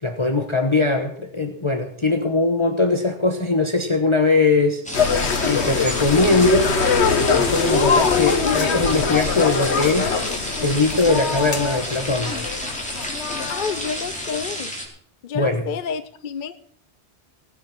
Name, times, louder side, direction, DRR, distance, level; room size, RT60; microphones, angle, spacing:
voice 1, 0.0-4.8 5.1-6.8 7.3-10.1 10.6-12.4 15.3-15.6, left 3 dB, 25° left, 5 dB, 1.1 m, -21 dB
sound 1, 4.8-14.8, equal, 5° left, 3.7 m, -31 dB
sound 2, 4.9-14.4, left 5 dB, 80° left, 1.4 m, -22 dB
voice 2, 8.4-8.8 13.5-14.7 15.2-16.7, left 6 dB, 55° left, 12 dB, 0.8 m, -29 dB
18.0 x 9.6 x 6.0 m, 0.63 s
omnidirectional pair, 1.1 m